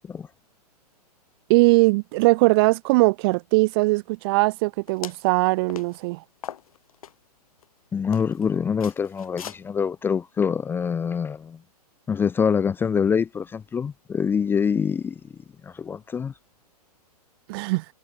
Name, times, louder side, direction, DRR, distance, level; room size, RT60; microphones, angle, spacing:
voice 1, 1.5-6.2 17.5-17.8, right 24 dB, 35° right, 0.9 m, -20 dB
sound 1, 4.9-5.3 5.7-6.0 6.4-7.1 7.6-7.7 8.1-8.4 8.8-9.6, left 9 dB, 60° left, 7.8 m, -38 dB
voice 2, 7.9-11.6 12.1-15.2 15.6-16.3, left 6 dB, 10° left, 0.6 m, -25 dB
figure-of-eight pair, 115°, 21 cm